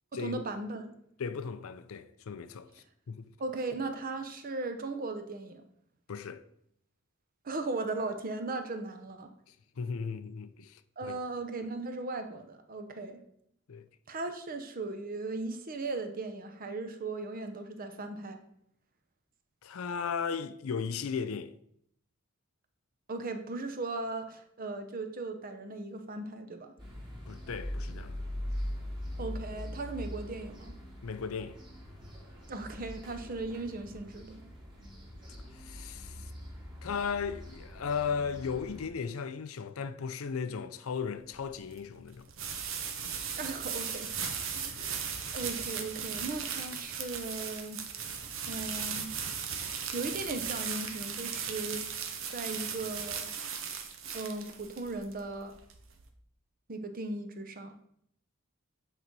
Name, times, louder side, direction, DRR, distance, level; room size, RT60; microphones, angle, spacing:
voice 1, 0.2-1.0 3.4-5.7 7.4-9.3 11.0-13.2 14.1-18.4 23.1-26.7 29.2-30.7 32.5-34.5 43.4-44.1 44.5-47.8 48.5-49.1 49.6-51.8 52.3-53.3 54.1-55.5 56.7-57.7, right 3 dB, 45° right, 0.8 m, -37 dB
voice 2, 1.2-2.7 3.1-3.3 6.1-6.4 9.8-11.2 13.7-13.8 19.6-21.5 27.3-28.2 31.0-31.6 35.5-36.3 36.8-42.3 44.7-45.0, left 6 dB, 85° left, 0.5 m, -36 dB
sound 1, 26.8-38.9, left 1 dB, 20° right, 2.3 m, -42 dB
sound 2, 41.2-56.1, right 7 dB, 70° right, 0.9 m, -37 dB
8.7 x 3.9 x 4.7 m
head